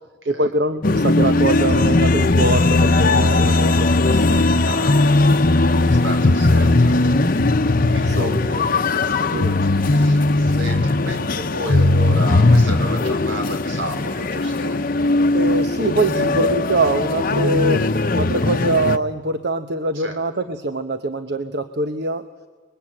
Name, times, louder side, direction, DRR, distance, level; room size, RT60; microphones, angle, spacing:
voice 1, 0.3-4.5 8.1-8.3 9.3-9.5 15.3-17.9 18.1-22.2, right 2 dB, 55° right, 9 dB, 1.0 m, -23 dB
sound 1, 0.8-19.0, left 2 dB, 45° left, 0.8 m, -18 dB
voice 2, 4.6-7.4 7.8-14.8 16.1-16.3 19.9-20.2, equal, 75° right, 5 dB, 4.8 m, -33 dB
29.5 x 21.5 x 8.8 m, 1.4 s
head